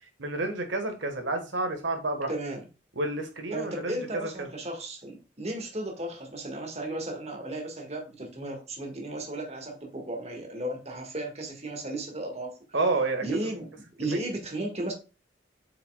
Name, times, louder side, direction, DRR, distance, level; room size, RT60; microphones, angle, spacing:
voice 1, 0.2-2.3 3.0-4.5 12.7-13.5 14.1-14.2, right 2 dB, 70° right, 5 dB, 1.4 m, -30 dB
voice 2, 2.3-2.6 3.5-12.6 13.2-14.9, right 1 dB, 35° right, 2 dB, 1.7 m, -35 dB
7.5 x 5.7 x 2.3 m, 0.31 s
head